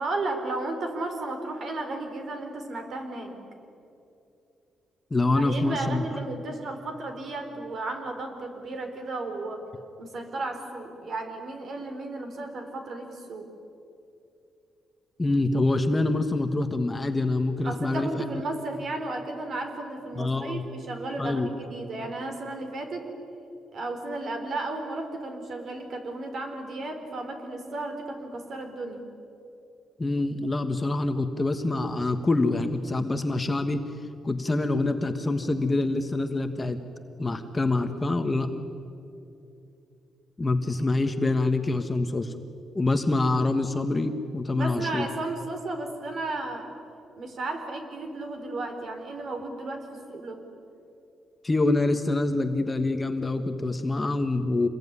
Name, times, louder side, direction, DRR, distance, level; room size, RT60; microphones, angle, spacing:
voice 1, 0.0-3.4 5.3-9.6 10.0-13.5 17.6-23.1 23.7-29.0 44.5-46.7 47.2-50.4, right 2 dB, 50° right, 5 dB, 4.3 m, -34 dB
voice 2, 5.1-6.1 15.2-18.3 20.2-20.6 21.2-21.5 30.0-33.8 34.2-36.8 37.2-38.5 40.4-42.4 42.7-45.1 51.4-54.7, left 2 dB, 20° left, 7 dB, 1.3 m, -25 dB
27.0 x 21.0 x 9.8 m, 2.7 s
cardioid pair, 135°, 0 cm